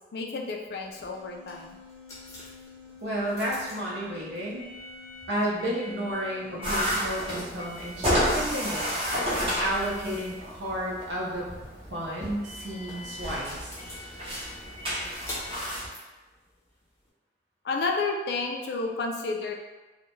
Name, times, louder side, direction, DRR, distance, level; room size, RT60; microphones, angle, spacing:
voice 1, 0.1-1.8 17.6-19.5, left 3 dB, 65° left, 2 dB, 0.3 m, -31 dB
sound 1, 0.7-17.1, left 1 dB, 20° left, 0.6 m, -45 dB
sound 2, 0.9-6.8, left 6 dB, ahead, 0.9 m, -49 dB
voice 2, 3.0-4.6 5.3-8.9 9.6-13.7, right 1 dB, 75° right, -4 dB, 0.7 m, -32 dB
sound 3, 6.6-15.9, equal, 30° right, 0.7 m, -31 dB
2.3 x 2.1 x 3.0 m, 1.1 s
head